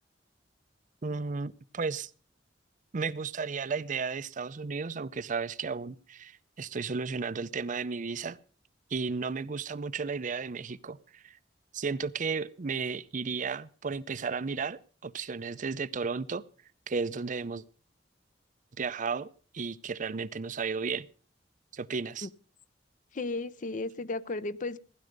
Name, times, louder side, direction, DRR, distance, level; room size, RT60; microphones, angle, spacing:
voice 1, 1.0-2.1 2.9-8.4 8.9-11.4 11.7-16.4 16.9-17.6 18.8-19.3 19.5-21.1 21.7-22.3, right 5 dB, 45° right, 0.5 m, -34 dB
voice 2, 23.1-24.8, left 3 dB, 45° left, 0.6 m, -34 dB
15.5 x 10.5 x 5.2 m
head